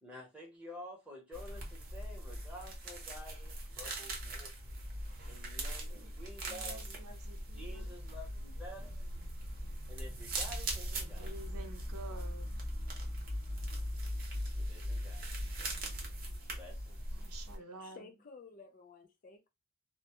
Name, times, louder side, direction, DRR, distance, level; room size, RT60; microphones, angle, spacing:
voice 1, 0.0-4.8 5.2-7.1 7.5-9.1 9.9-11.7 14.5-15.4 16.5-17.2, left 1 dB, 5° right, 0.8 m, -51 dB
sound 1, 1.3-17.6, right 1 dB, 40° right, 0.7 m, -40 dB
voice 2, 6.5-7.9 11.2-12.5 17.2-18.0, right 2 dB, 80° right, 0.6 m, -50 dB
sound 2, 7.9-16.4, left 1 dB, 75° left, 0.7 m, -65 dB
voice 3, 17.6-19.5, left 4 dB, 40° left, 0.4 m, -54 dB
2.1 x 2.0 x 2.8 m
head